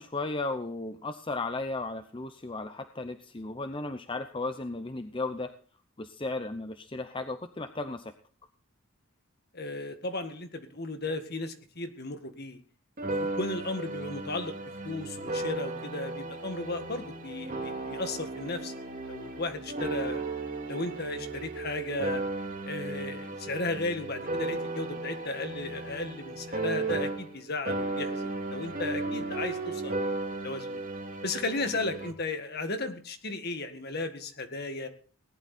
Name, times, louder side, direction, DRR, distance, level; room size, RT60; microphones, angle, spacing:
voice 1, 0.0-5.5 6.0-8.1, left 2 dB, 25° left, 8 dB, 0.7 m, -35 dB
voice 2, 9.5-12.6 13.0-14.6 14.8-18.7 19.1-20.2 20.7-22.2 22.7-29.9 30.4-30.8 31.2-34.9, left 2 dB, 50° left, 7 dB, 1.9 m, -35 dB
sound 1, 13.0-27.4 27.7-32.1, right 2 dB, 40° right, 2.6 m, -35 dB
18.5 x 11.0 x 4.3 m, 0.42 s
head